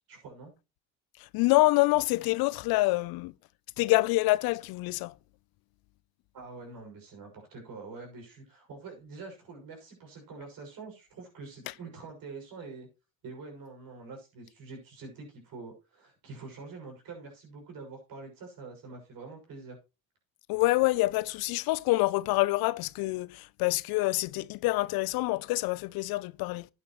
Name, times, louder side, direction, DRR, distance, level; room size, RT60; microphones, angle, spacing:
voice 1, 0.1-0.5 6.3-12.9 13.2-19.8, right 4 dB, 65° right, 6.2 m, -45 dB
voice 2, 1.2-3.3 3.8-5.1 20.5-26.7, left 20 dB, 75° left, 0.6 m, -26 dB
11.5 x 9.2 x 3.1 m
supercardioid pair, 85°, 37 cm